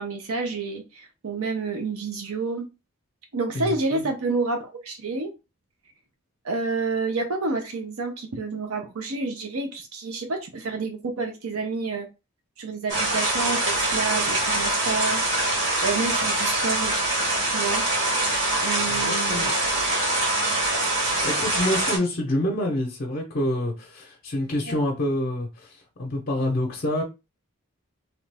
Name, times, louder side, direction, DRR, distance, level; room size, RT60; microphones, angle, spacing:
voice 1, 0.0-2.7 3.3-5.3 6.4-12.1 12.6-15.2 15.8-17.0 17.4-17.8 18.6-19.5 21.0-21.1 24.7-24.8, right 3 dB, 90° right, 0.6 m, -29 dB
voice 2, 3.5-4.0 18.9-19.5 21.2-27.0, left 1 dB, 45° left, 0.6 m, -27 dB
sound 1, 12.9-22.0, right 2 dB, 50° right, 1.4 m, -24 dB
3.1 x 2.4 x 3.3 m
head